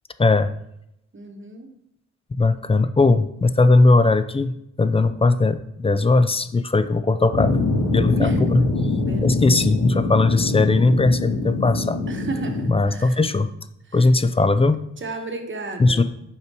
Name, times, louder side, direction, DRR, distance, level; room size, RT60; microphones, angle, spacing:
voice 1, 0.2-0.5 2.3-7.6 7.9-8.6 9.2-12.0 12.7-13.5 13.9-14.8 15.8-16.0, left 3 dB, 20° left, 12 dB, 0.4 m, -18 dB
voice 2, 1.1-1.7 8.2-8.4 9.0-9.3 12.1-13.2 13.9-14.1 15.0-16.0, right 3 dB, 40° right, 4 dB, 1.1 m, -33 dB
sound 1, 7.3-12.7, left 2 dB, 55° left, 1.4 m, -23 dB
5.4 x 5.2 x 4.7 m, 0.80 s
wide cardioid pair, 100°, 29 cm